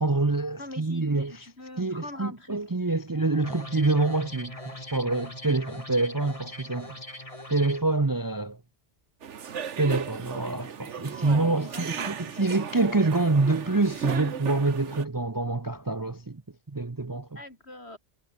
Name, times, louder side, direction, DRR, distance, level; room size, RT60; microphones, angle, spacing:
voice 1, 0.0-1.3 1.8-6.9 7.5-8.6 9.8-16.4 16.7-17.4, right 3 dB, 20° right, 0.7 m, -26 dB
voice 2, 0.6-2.6 11.2-12.2 17.1-18.0, left 1 dB, 65° left, 6.1 m, -42 dB
sound 1, 3.4-7.8, left 1 dB, 30° left, 4.7 m, -41 dB
sound 2, 9.2-15.0, right 7 dB, 85° right, 1.5 m, -36 dB
omnidirectional pair, 1.2 m